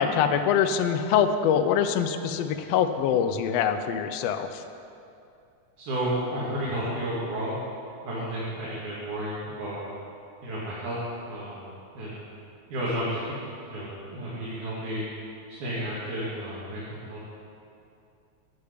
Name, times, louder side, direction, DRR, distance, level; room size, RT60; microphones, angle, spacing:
voice 1, 0.0-4.6, left 8 dB, 90° left, 8 dB, 1.4 m, -24 dB
voice 2, 5.8-7.5 8.0-9.8 10.4-11.0 11.3-11.7 11.9-12.3 12.7-13.3 13.7-15.1 15.5-17.2, right 1 dB, 75° right, -9 dB, 3.2 m, -32 dB
10.0 x 8.2 x 5.0 m, 2.6 s
omnidirectional pair, 3.5 m